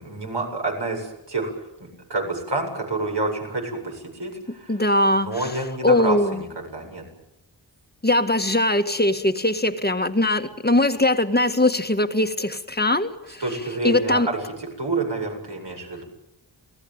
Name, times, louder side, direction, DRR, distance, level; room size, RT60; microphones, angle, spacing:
voice 1, 0.0-1.5 1.8-4.8 5.1-7.0 13.4-16.0, right 2 dB, 65° right, 2 dB, 7.9 m, -28 dB
voice 2, 4.7-5.5 5.8-6.4 8.0-13.4 13.8-14.3, left 1 dB, 20° left, 7 dB, 1.8 m, -21 dB
28.5 x 19.5 x 9.0 m, 0.86 s
wide cardioid pair, 65°, 45 cm